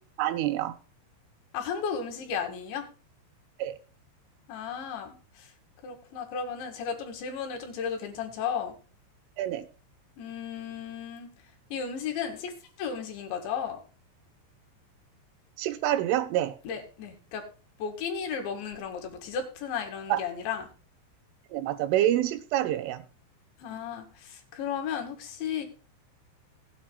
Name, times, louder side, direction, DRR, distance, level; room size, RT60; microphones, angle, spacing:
voice 1, 0.2-0.8 3.6-3.8 9.4-9.7 15.6-16.6 20.1-20.2 21.5-23.0, right 12 dB, 85° right, 3.6 m, -27 dB
voice 2, 1.5-2.9 4.5-5.5 5.8-8.7 10.2-11.3 11.7-12.5 12.8-13.8 16.6-17.4 17.8-20.7 23.6-25.7, left 7 dB, 70° left, 4.2 m, -34 dB
19.5 x 8.7 x 2.3 m
omnidirectional pair, 5.5 m